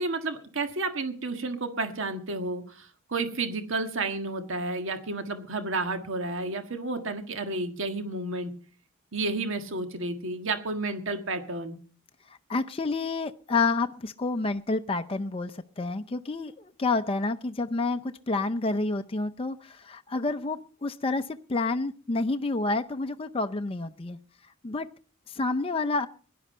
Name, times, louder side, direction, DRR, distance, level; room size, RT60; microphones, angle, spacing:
voice 1, 0.0-8.5 9.1-11.8, right 3 dB, 60° right, 7 dB, 1.6 m, -31 dB
voice 2, 12.5-16.5 16.8-21.2 21.5-24.2 24.6-24.9 25.3-26.1, left 3 dB, 25° left, 7 dB, 0.6 m, -29 dB
17.0 x 11.0 x 5.5 m, 0.43 s
head